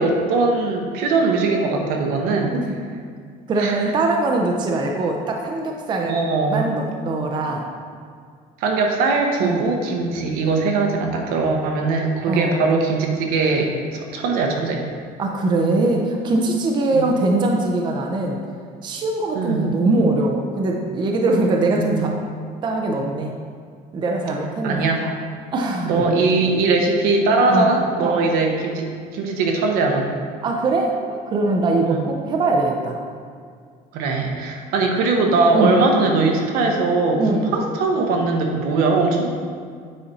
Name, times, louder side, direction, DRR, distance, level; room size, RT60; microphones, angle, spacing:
voice 1, 0.0-2.6 3.6-3.7 6.1-6.6 8.6-14.8 16.9-17.1 19.3-19.7 21.7-22.1 24.6-25.1 25.8-30.1 31.8-32.1 33.9-39.3, right 3 dB, 75° right, 1 dB, 1.1 m, -20 dB
voice 2, 3.5-6.1 6.5-7.7 9.4-9.7 12.3-12.5 15.2-18.4 18.8-22.1 22.6-23.3 23.9-24.9 25.5-26.0 27.5-27.7 28.0-28.2 30.4-33.0 35.5-35.8 37.2-37.5, right 2 dB, 30° right, 1 dB, 0.6 m, -22 dB
8.7 x 4.2 x 4.1 m, 2.1 s
cardioid pair, 155°, 16 cm